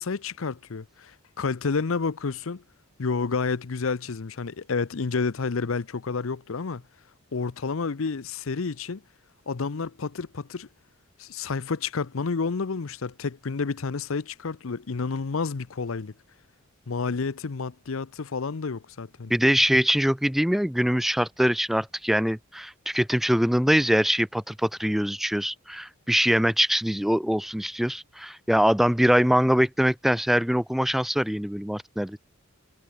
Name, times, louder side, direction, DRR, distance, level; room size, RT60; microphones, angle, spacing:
voice 1, 0.0-2.6 3.0-6.8 7.3-9.0 9.5-10.7 11.2-16.1 16.9-19.3, left 4 dB, 75° left, 0.7 m, -30 dB
voice 2, 19.3-32.2, equal, ahead, 0.3 m, -23 dB
head